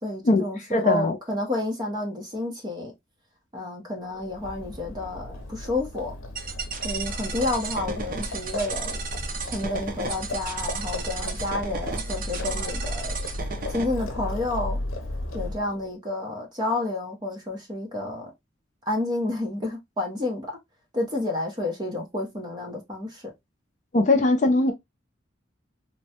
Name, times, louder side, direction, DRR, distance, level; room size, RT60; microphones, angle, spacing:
voice 1, 0.0-2.9 3.5-6.1 6.8-9.0 9.5-13.2 13.7-14.8 15.3-18.3 18.8-20.5 20.9-23.3 24.1-24.3, left 2 dB, 20° right, 0.8 m, -30 dB
voice 2, 0.7-1.2 23.9-24.7, left 2 dB, 35° left, 0.4 m, -20 dB
Livestock farm animals working animals, 4.2-15.8, left 1 dB, 85° left, 0.6 m, -35 dB
sound 1, 6.4-13.8, right 3 dB, 45° right, 0.6 m, -33 dB
3.0 x 2.2 x 2.7 m
head